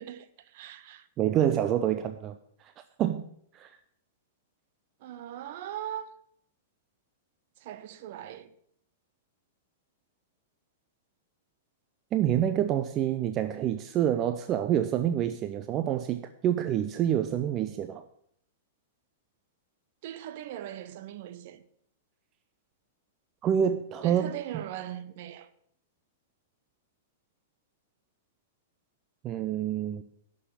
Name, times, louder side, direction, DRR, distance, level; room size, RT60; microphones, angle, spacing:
voice 1, 0.0-1.1 5.0-6.1 7.6-8.5 20.0-21.6 24.0-25.5, right 11 dB, 50° right, 1.0 m, -40 dB
voice 2, 1.2-2.3 2.6-2.7 3.0-3.2 3.5-3.7 12.1-18.0 23.4-24.3 29.2-30.0, right 10 dB, 30° right, 0.6 m, -27 dB
11.0 x 6.4 x 8.6 m
figure-of-eight pair, 100°, 0 cm